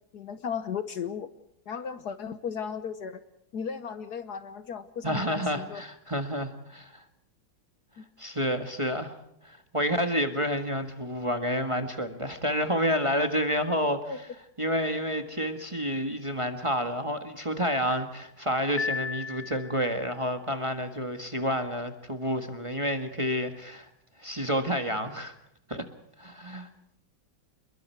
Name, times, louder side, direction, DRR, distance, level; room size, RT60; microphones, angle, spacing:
voice 1, 0.1-1.3 1.7-3.2 3.5-5.8 8.0-8.1 14.0-14.2, left 7 dB, 60° left, 12 dB, 1.4 m, -35 dB
voice 2, 5.0-7.0 8.2-9.1 9.4-14.0 14.6-23.9 24.2-25.3 25.7-25.8 26.2-26.7, equal, 15° right, 7 dB, 1.5 m, -29 dB
Piano, 18.8-20.1, left 6 dB, 45° left, 0.6 m, -34 dB
27.5 x 22.0 x 4.6 m, 0.77 s
omnidirectional pair, 2.1 m